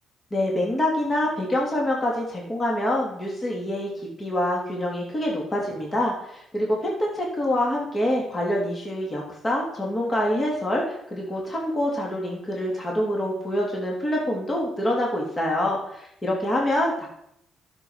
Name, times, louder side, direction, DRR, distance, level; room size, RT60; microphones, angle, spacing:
voice 1, 0.3-17.1, left 1 dB, 30° left, -2 dB, 3.2 m, -26 dB
11.5 x 7.0 x 5.8 m, 0.75 s
cardioid pair, 90°, 0 cm